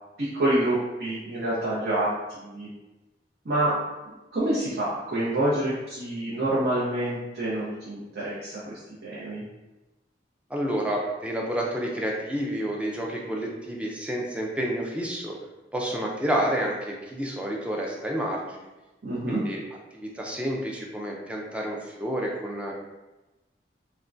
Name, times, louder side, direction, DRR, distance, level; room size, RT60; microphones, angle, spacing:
voice 1, 0.2-2.7 3.4-3.8 4.3-9.4 19.0-19.4, right 1 dB, 65° right, -9 dB, 0.7 m, -27 dB
voice 2, 10.5-15.4 15.7-18.6 19.3-19.6 19.9-22.7, right 1 dB, 5° right, -2 dB, 0.4 m, -29 dB
3.4 x 2.1 x 2.5 m, 1.1 s
head